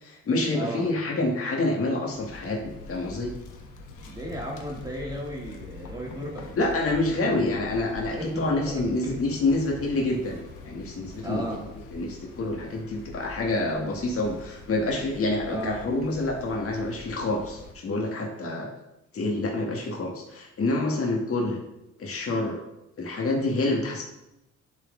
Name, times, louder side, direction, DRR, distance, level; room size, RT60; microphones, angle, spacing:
voice 1, 0.0-3.3 6.6-10.4 10.6-11.4 11.9-18.7 19.1-21.6 22.0-22.6 23.0-24.0, left 2 dB, 50° left, 0 dB, 1.6 m, -27 dB
voice 2, 0.5-0.9 4.1-6.7 8.1-9.2 11.2-11.7 15.5-15.8, equal, 15° right, -2 dB, 1.6 m, -35 dB
sound 1, 2.0-17.7, left 3 dB, 90° left, 1.1 m, -44 dB
10.5 x 4.2 x 3.8 m, 0.90 s
cardioid pair, 90°, 30 cm